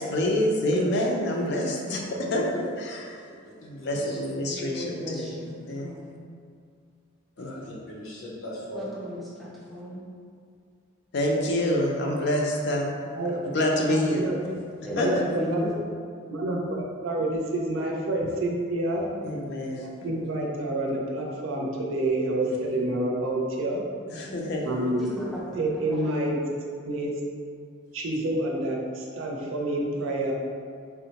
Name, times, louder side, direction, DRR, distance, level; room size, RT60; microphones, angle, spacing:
voice 1, 0.0-3.2 3.6-5.3 5.6-5.9 7.4-7.7 11.1-14.3 15.0-15.2 19.2-19.9 22.4-22.6 24.1-24.8, left 1 dB, 55° left, -1 dB, 0.4 m, -27 dB
voice 2, 2.1-2.5 4.4-6.1 8.7-10.1 14.8-15.7 19.0-19.2 24.3-24.4 25.0-25.4 25.8-26.1, equal, ahead, -8 dB, 0.5 m, -36 dB
voice 3, 3.3-4.2 7.4-9.0, equal, 85° left, -5 dB, 0.8 m, -40 dB
voice 4, 13.1-14.5 14.9-15.7 16.3-19.0 20.0-23.8 24.6-25.0 25.6-26.4 26.8-27.1 27.9-30.3, right 1 dB, 75° right, -1 dB, 0.5 m, -28 dB
3.5 x 2.1 x 2.8 m, 2.2 s
head